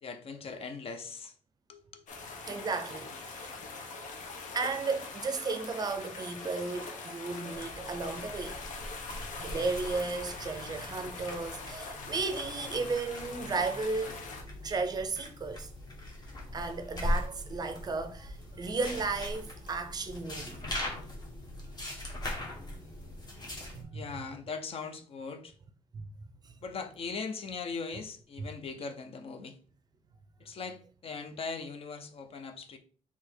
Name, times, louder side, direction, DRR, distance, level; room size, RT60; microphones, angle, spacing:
voice 1, 0.0-1.3 1.7-2.0 23.9-25.5 26.6-29.6 30.4-32.8, left 4 dB, 50° left, 0.6 m, -40 dB
sound 1, 2.1-14.4, left 3 dB, 85° left, 0.9 m, -43 dB
voice 2, 2.4-3.6 3.9-4.0 4.5-8.6 9.3-14.2 14.6-15.7 16.5-20.7 23.7-24.1 25.9-26.1 26.4-26.5 28.4-28.5, right 4 dB, 30° right, 0.5 m, -34 dB
sound 2, 7.5-23.8, left 1 dB, 35° left, 1.1 m, -40 dB
4.2 x 2.8 x 4.4 m
wide cardioid pair, 175°, 13 cm